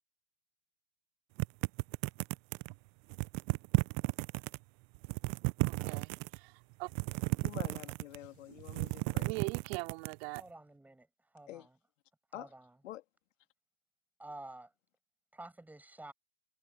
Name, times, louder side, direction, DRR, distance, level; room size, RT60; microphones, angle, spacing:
sound 1, 1.4-2.7 3.1-4.6 5.0-6.4 6.9-8.3 8.6-10.4, right 26 dB, 30° right, 0.6 m, -34 dB
voice 1, 5.6-6.5 6.8-6.9 8.5-8.6 9.2-10.4, right 27 dB, 45° right, 4.9 m, -41 dB
voice 2, 7.4-9.5 11.5-11.7 12.3-12.5 12.8-13.0, left 14 dB, 60° left, 3.2 m, -47 dB
voice 3, 10.3-11.8 12.3-12.8 14.2-14.7 15.3-16.1, right 2 dB, 5° right, 7.3 m, -50 dB
hypercardioid pair, 130°, 42 cm